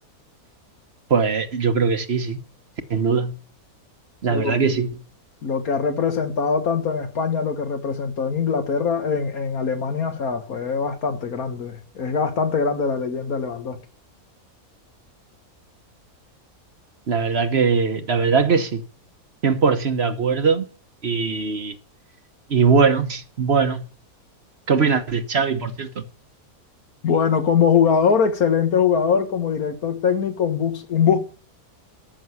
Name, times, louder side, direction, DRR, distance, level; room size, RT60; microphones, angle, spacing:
voice 1, 1.1-2.4 2.9-3.3 4.2-4.9 17.1-18.8 19.4-20.7 21.0-21.7 22.5-23.8 24.7-26.0, right 5 dB, 45° right, 1.2 m, -20 dB
voice 2, 5.4-13.8 27.0-31.2, left 6 dB, 75° left, 1.9 m, -22 dB
13.5 x 6.4 x 9.6 m
omnidirectional pair, 1.6 m